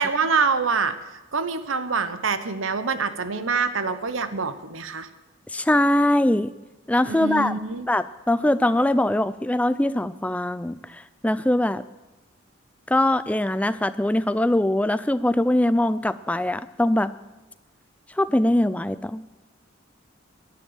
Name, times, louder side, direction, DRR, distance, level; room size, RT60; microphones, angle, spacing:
voice 1, 0.0-5.1 7.1-7.9, right 5 dB, 85° right, 11 dB, 1.0 m, -25 dB
voice 2, 5.5-6.5 6.9-7.6 7.9-11.8 12.9-17.1 18.2-19.2, left 1 dB, 5° left, 14 dB, 0.4 m, -22 dB
11.5 x 11.0 x 9.0 m, 1.1 s
head